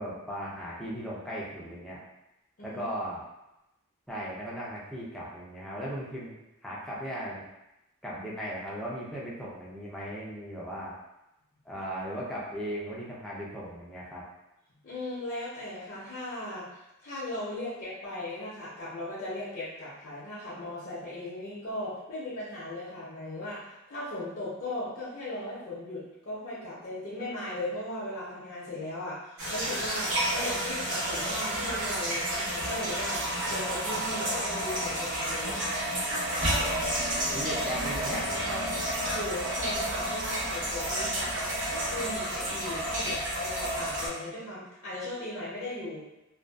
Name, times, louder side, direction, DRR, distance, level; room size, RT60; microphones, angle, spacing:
voice 1, 0.0-2.0 2.6-3.2 4.1-6.3 6.6-7.4 8.0-10.9 11.6-14.2 37.3-38.7 43.0-43.1, equal, ahead, -7 dB, 0.5 m, -37 dB
voice 2, 14.8-35.9 39.1-41.5 41.8-46.0, left 1 dB, 45° left, -10 dB, 0.6 m, -37 dB
sound 1, 29.4-44.1, right 1 dB, 60° right, 0.9 m, -30 dB
2.5 x 2.3 x 2.3 m, 0.93 s
head